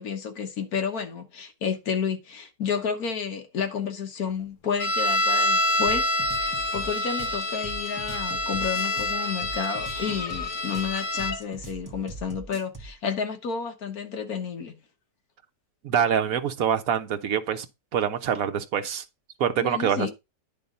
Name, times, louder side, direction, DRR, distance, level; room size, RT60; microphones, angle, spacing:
voice 1, 0.0-6.1 6.4-14.8 19.6-20.1, left 6 dB, 60° left, 1.6 m, -31 dB
sound 1, 4.8-11.4, left 1 dB, 35° left, 1.1 m, -27 dB
sound 2, 5.9-13.0, right 2 dB, 10° right, 1.6 m, -41 dB
voice 2, 15.8-17.7 17.9-19.0 19.4-20.1, right 8 dB, 60° right, 1.3 m, -25 dB
10.0 x 3.7 x 5.3 m
omnidirectional pair, 1.8 m